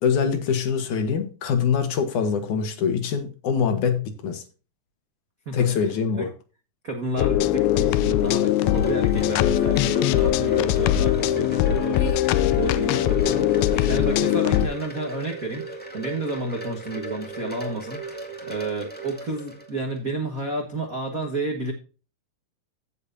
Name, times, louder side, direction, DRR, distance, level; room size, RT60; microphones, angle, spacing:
voice 1, 0.0-4.4 5.5-6.3, left 6 dB, 65° left, 2.5 m, -24 dB
voice 2, 6.8-21.7, right 2 dB, 85° right, 0.7 m, -31 dB
sound 1, 7.2-14.7, left 12 dB, 85° left, 2.4 m, -21 dB
Wind chime, 7.7-20.0, right 3 dB, 5° left, 0.7 m, -37 dB
15.5 x 6.8 x 2.7 m
omnidirectional pair, 4.3 m